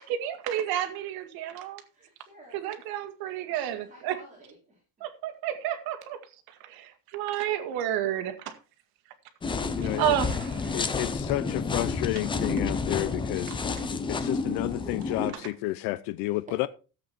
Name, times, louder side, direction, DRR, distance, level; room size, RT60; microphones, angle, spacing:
voice 1, 0.0-1.8 2.5-4.2 5.0-6.2 6.6-8.6 10.0-10.8, right 11 dB, 60° right, 2.0 m, -31 dB
voice 2, 1.9-2.9 3.2-4.8, right 1 dB, 20° right, 3.5 m, -54 dB
sound 1, 9.4-15.3, left 4 dB, 10° left, 0.7 m, -30 dB
voice 3, 9.8-10.2 10.7-13.5 14.1-16.7, left 18 dB, 70° left, 0.7 m, -31 dB
13.5 x 8.0 x 4.3 m
cardioid pair, 175°, 40 cm